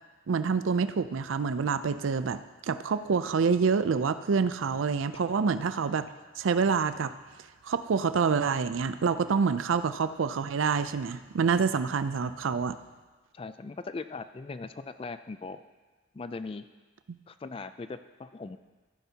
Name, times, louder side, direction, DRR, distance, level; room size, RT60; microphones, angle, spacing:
voice 1, 0.3-6.1 6.4-7.1 7.6-12.8 17.1-17.2, right 5 dB, 85° right, 12 dB, 0.4 m, -27 dB
voice 2, 13.3-15.6 16.1-16.6 17.3-18.6, left 3 dB, 30° left, 11 dB, 0.3 m, -39 dB
14.0 x 10.0 x 2.8 m, 1.3 s
head